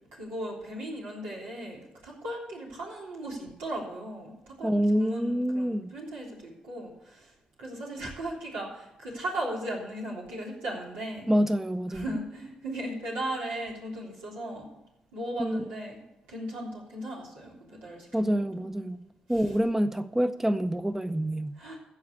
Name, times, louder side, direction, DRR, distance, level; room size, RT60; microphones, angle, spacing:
voice 1, 0.1-7.3 7.6-11.3 11.9-14.7 15.1-16.0 16.3-18.5 18.8-18.9 21.6-21.8, right 1 dB, 90° right, -5 dB, 3.6 m, -37 dB
voice 2, 4.6-5.9 11.3-12.0 15.4-15.7 18.1-21.6, equal, 10° right, 10 dB, 0.7 m, -27 dB
14.5 x 4.9 x 8.3 m, 0.87 s
supercardioid pair, 50°, 3 cm